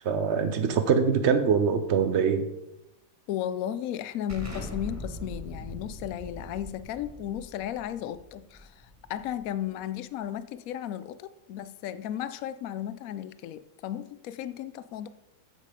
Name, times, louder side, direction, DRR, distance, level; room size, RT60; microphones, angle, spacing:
voice 1, 0.0-2.5, right 6 dB, 75° right, 0.6 m, -23 dB
voice 2, 3.3-15.1, left 11 dB, 80° left, 0.7 m, -35 dB
Explosion, 4.3-9.7, left 1 dB, 10° right, 1.6 m, -41 dB
9.0 x 7.4 x 5.0 m
omnidirectional pair, 2.0 m